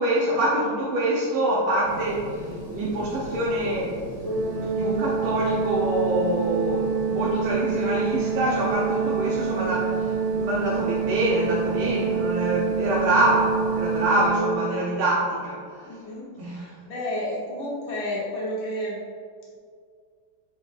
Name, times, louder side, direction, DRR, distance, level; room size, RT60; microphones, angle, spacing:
voice 1, 0.0-2.3 2.7-15.9 16.4-16.7, right 1 dB, 85° right, -6 dB, 1.9 m, -25 dB
sound 1, 1.8-14.3, right 1 dB, 45° right, 2.0 m, -38 dB
Organ, 4.2-15.1, right 5 dB, 70° right, 1.6 m, -27 dB
voice 2, 15.8-19.0, left 1 dB, 85° left, -5 dB, 2.2 m, -31 dB
8.8 x 5.3 x 2.5 m, 2.1 s
omnidirectional pair, 2.2 m